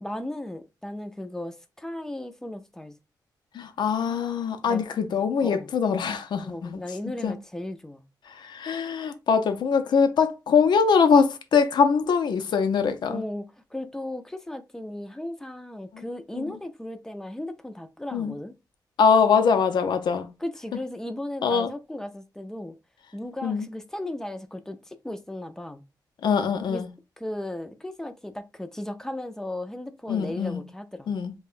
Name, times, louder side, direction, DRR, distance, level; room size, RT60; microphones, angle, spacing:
voice 1, 0.0-2.9 4.6-4.8 5.4-5.7 6.4-8.0 13.1-18.5 20.4-22.8 23.1-25.8 26.7-26.8 27.2-31.1, left 1 dB, 5° left, 0.4 m, -36 dB
voice 2, 3.5-6.8 7.2-7.4 8.3-13.2 15.9-16.0 16.3-16.4 18.1-18.3 19.0-20.3 21.4-21.7 23.4-23.7 26.2-26.9 30.1-30.6 31.1-31.3, left 6 dB, 85° left, 0.5 m, -23 dB
5.4 x 2.2 x 2.4 m
wide cardioid pair, 165°, 7 cm